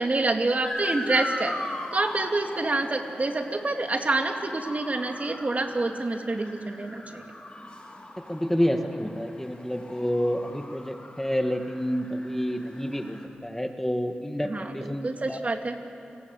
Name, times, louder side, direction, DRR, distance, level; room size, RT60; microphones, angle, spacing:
voice 1, 0.0-1.5 1.9-7.2 14.5-15.7, right 2 dB, 40° right, 4 dB, 2.6 m, -27 dB
Motor vehicle (road) / Siren, 0.6-13.3, left 1 dB, 30° left, 4.4 m, -39 dB
voice 2, 8.3-15.4, equal, 10° left, 5 dB, 2.0 m, -29 dB
30.0 x 20.0 x 8.1 m, 2.8 s
cardioid pair, 50°, 4 cm